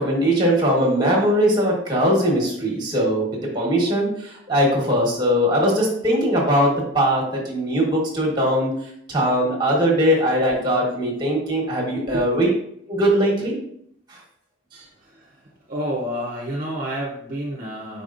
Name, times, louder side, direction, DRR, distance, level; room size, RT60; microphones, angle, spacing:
voice 1, 0.0-8.7 9.1-12.5 12.9-13.5, equal, 20° right, -2 dB, 1.3 m, -20 dB
voice 2, 15.7-18.0, equal, 45° right, -2 dB, 0.6 m, -28 dB
5.2 x 4.0 x 2.5 m, 0.70 s
head